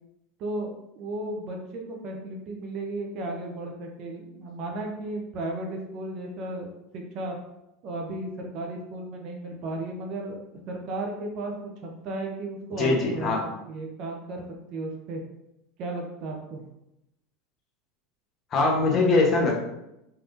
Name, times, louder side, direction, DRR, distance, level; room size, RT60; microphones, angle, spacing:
voice 1, 0.4-6.7 6.9-7.4 7.8-13.4 13.7-14.4 14.7-15.2 15.8-16.6, right 2 dB, 55° right, 1 dB, 0.7 m, -34 dB
voice 2, 12.8-13.4 18.5-19.6, left 3 dB, 40° left, -1 dB, 1.0 m, -22 dB
3.4 x 2.8 x 2.6 m, 0.86 s
hypercardioid pair, 90°, 0 cm